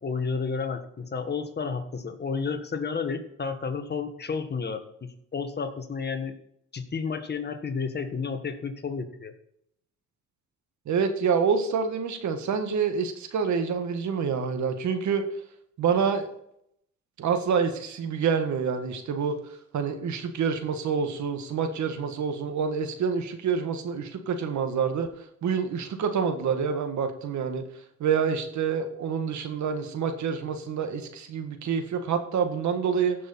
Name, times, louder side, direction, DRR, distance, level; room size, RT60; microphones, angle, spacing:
voice 1, 0.0-6.3 6.7-9.3, left 5 dB, 35° left, 7 dB, 1.6 m, -31 dB
voice 2, 10.8-15.2 15.8-16.3 17.2-19.4 19.7-25.1 25.4-27.6 28.0-33.2, right 6 dB, 70° right, 7 dB, 1.7 m, -27 dB
15.5 x 6.3 x 4.2 m, 0.74 s
cardioid pair, 90°, 30 cm